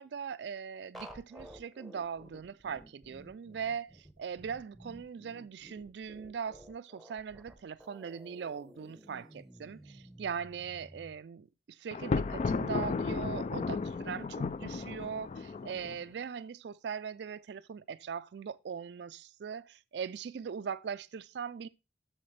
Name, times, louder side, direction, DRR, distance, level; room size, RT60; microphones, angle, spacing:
voice 1, 0.0-21.7, right 7 dB, 70° right, 0.4 m, -40 dB
sound 1, 0.9-11.1, equal, ahead, 0.8 m, -53 dB
Thunder, 11.9-16.0, left 4 dB, 40° left, 0.3 m, -34 dB
7.8 x 6.5 x 3.2 m
head